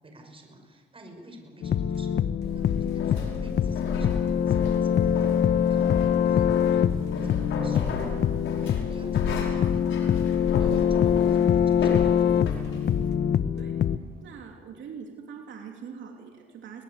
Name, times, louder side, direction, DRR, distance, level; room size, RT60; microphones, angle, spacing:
voice 1, 0.0-8.0 8.6-9.9 10.6-12.6, right 1 dB, 25° right, 4 dB, 5.7 m, -49 dB
sound 1, 1.2-14.4, right 4 dB, 50° right, 7.0 m, -54 dB
sound 2, 1.6-14.0, left 8 dB, 60° left, 0.9 m, -24 dB
sound 3, 2.4-13.1, left 4 dB, 80° left, 5.3 m, -35 dB
voice 2, 14.2-16.8, right 6 dB, 70° right, 1 dB, 3.1 m, -42 dB
23.0 x 20.0 x 8.2 m, 1.5 s
cardioid pair, 90°, 20 cm